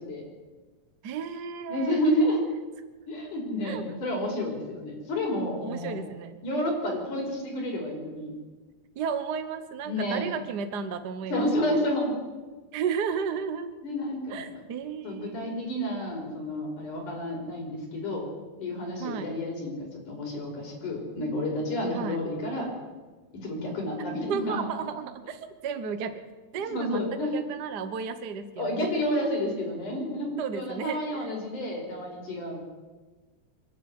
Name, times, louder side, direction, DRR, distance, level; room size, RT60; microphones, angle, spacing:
voice 1, 1.0-2.3 3.6-3.8 5.6-6.4 8.9-11.8 12.7-13.7 14.3-15.6 19.0-19.3 21.9-22.2 24.3-26.2 26.5-29.0 29.4-29.5 30.4-31.3 31.5-31.8, right 6 dB, 65° right, 9 dB, 1.0 m, -34 dB
voice 2, 1.7-2.5 3.1-6.0 6.4-8.3 9.8-10.3 11.3-12.2 13.8-14.4 15.0-18.3 18.6-22.7 23.4-24.6 26.7-27.4 28.6-32.6, left 1 dB, 80° left, 1 dB, 6.5 m, -30 dB
25.5 x 11.0 x 9.6 m, 1.3 s
omnidirectional pair, 3.5 m